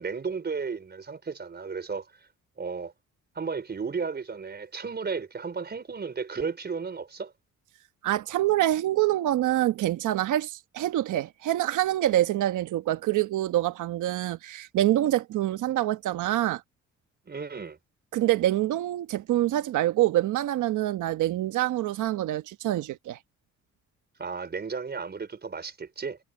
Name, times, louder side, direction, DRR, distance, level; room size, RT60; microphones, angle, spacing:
voice 1, 0.0-2.1 2.6-2.9 3.3-7.3 17.3-17.8 24.2-26.2, right 5 dB, 35° right, 4.6 m, -34 dB
voice 2, 8.0-16.6 18.1-23.2, right 14 dB, 80° right, 1.3 m, -26 dB
cardioid pair, 90°, 30 cm